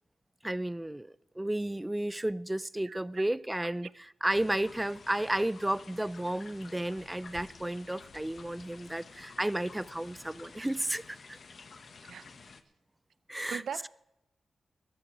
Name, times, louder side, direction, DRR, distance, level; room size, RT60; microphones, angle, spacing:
voice 1, 0.4-11.4 13.3-13.9, right 1 dB, 10° right, 0.4 m, -33 dB
voice 2, 2.8-3.2 3.6-3.7 12.0-12.4 13.5-13.9, right 7 dB, 80° right, 0.5 m, -41 dB
sound 1, 4.3-12.6, left 4 dB, 55° left, 0.9 m, -51 dB
19.5 x 13.5 x 3.0 m
cardioid pair, 90°, 0 cm